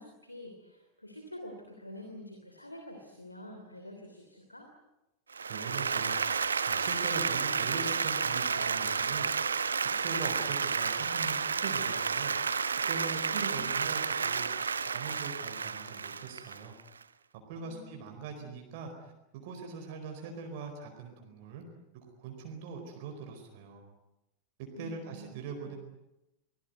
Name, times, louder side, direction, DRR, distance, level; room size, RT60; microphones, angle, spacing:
voice 1, 0.0-4.7 13.3-13.8 17.5-18.0 18.4-18.5 24.7-25.7, left 1 dB, 85° left, 4 dB, 3.1 m, -47 dB
Applause, 5.3-17.0, right 5 dB, 75° right, 1.0 m, -31 dB
voice 2, 5.5-6.2 6.7-9.3 9.8-12.3 12.9-16.8 17.5-21.6 21.9-23.8 24.6-25.8, right 5 dB, 50° right, 3 dB, 4.6 m, -42 dB
24.5 x 20.0 x 9.4 m, 0.95 s
figure-of-eight pair, 90°, 0 cm